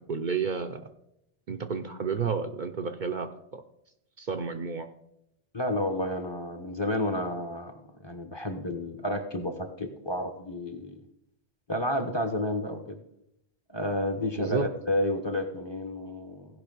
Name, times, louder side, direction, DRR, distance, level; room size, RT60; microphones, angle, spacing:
voice 1, 0.1-0.9 1.5-3.6 4.2-4.9 14.4-14.7, right 5 dB, 55° right, 6 dB, 0.7 m, -31 dB
voice 2, 5.5-7.8 8.0-10.9 11.7-13.0 13.7-16.5, left 1 dB, 25° left, 5 dB, 1.0 m, -31 dB
16.0 x 5.5 x 5.4 m, 0.80 s
omnidirectional pair, 1.1 m